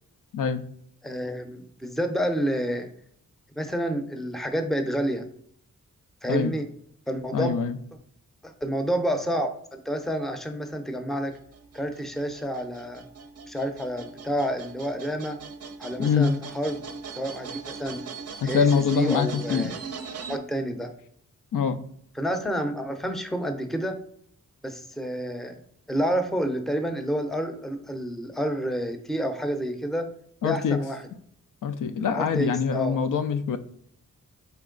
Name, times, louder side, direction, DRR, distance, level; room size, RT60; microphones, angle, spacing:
voice 1, 1.0-2.9 3.6-5.2 6.2-6.7 7.1-7.6 8.4-11.4 11.7-13.0 13.5-15.4 15.8-16.8 17.1-18.0 18.4-19.8 20.3-20.9 22.2-24.0 24.6-25.6 25.9-30.1 30.4-31.0 32.1-33.0, equal, ahead, 7 dB, 0.5 m, -29 dB
voice 2, 7.3-7.8 16.0-16.3 18.4-19.7 21.5-21.8 30.4-30.8 31.6-33.6, left 6 dB, 85° left, 10 dB, 0.5 m, -24 dB
sound 1, 11.3-20.4, right 5 dB, 55° right, 0.5 m, -40 dB
4.5 x 3.0 x 3.7 m, 0.65 s
wide cardioid pair, 100°, 31 cm